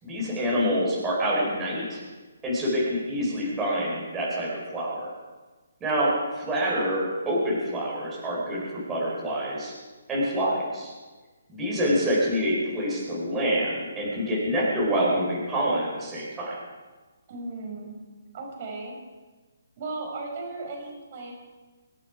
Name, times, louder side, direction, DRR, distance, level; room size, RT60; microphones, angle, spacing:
voice 1, 0.0-2.0 2.4-5.1 5.8-9.7 10.1-10.9 11.5-16.6, equal, 15° right, -5 dB, 4.7 m, -26 dB
voice 2, 17.3-18.0 18.3-19.0 19.8-21.3, right 3 dB, 40° right, 1 dB, 5.2 m, -36 dB
25.5 x 9.0 x 4.9 m, 1.3 s
hypercardioid pair, 155°, 0 cm